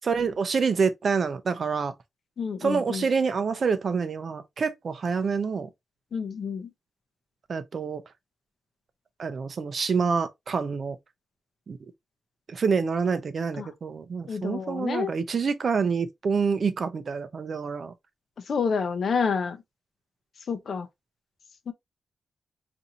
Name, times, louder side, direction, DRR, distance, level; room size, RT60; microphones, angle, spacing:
voice 1, 0.0-1.9 2.6-5.7 7.5-8.0 9.2-11.0 11.7-11.8 12.5-17.9, right 5 dB, 45° right, 0.5 m, -27 dB
voice 2, 2.4-3.0 6.1-6.7 13.6-13.7 14.3-15.1 18.5-19.6 20.5-20.9 21.7-21.8, left 5 dB, 50° left, 0.6 m, -28 dB
4.1 x 2.6 x 2.5 m
wide cardioid pair, 170°, 0 cm